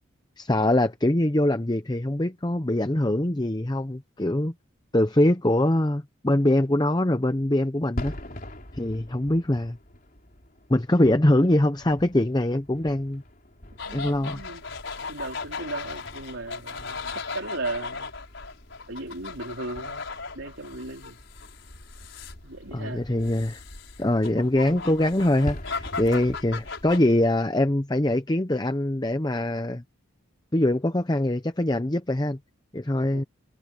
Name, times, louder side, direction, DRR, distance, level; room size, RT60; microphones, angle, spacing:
voice 1, 0.4-4.5 4.9-8.2 8.7-9.8 10.7-13.2 13.9-14.4 22.7-23.6 24.0-29.8 30.5-32.4 32.7-33.2, left 1 dB, 20° left, 0.7 m, -23 dB
sound 1, 7.9-27.3, equal, 40° left, 3.7 m, -44 dB
sound 2, 13.8-27.0, left 4 dB, 60° left, 7.0 m, -37 dB
voice 2, 13.8-14.7 15.1-18.1 18.9-20.1 20.3-21.2 22.4-23.1 33.1-33.2, right 2 dB, 65° right, 3.8 m, -36 dB
head